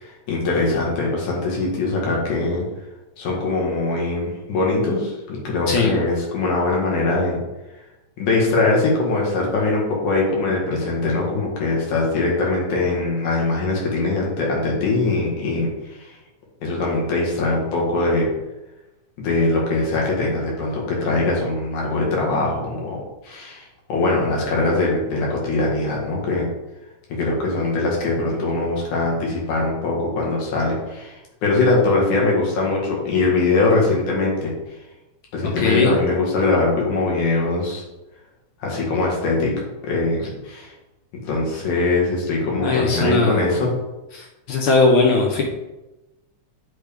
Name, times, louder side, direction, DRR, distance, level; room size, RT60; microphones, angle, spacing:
voice 1, 0.0-2.7 3.2-7.4 8.2-16.1 16.6-18.3 19.2-26.5 27.1-34.5 35.3-37.8 38.6-39.5 39.8-40.7 41.2-43.7, left 3 dB, 90° left, -3 dB, 3.1 m, -22 dB
voice 2, 35.6-35.9 42.6-43.4 44.1-45.4, left 3 dB, 70° left, 0 dB, 1.3 m, -19 dB
9.2 x 3.7 x 3.4 m, 1.0 s
omnidirectional pair, 3.4 m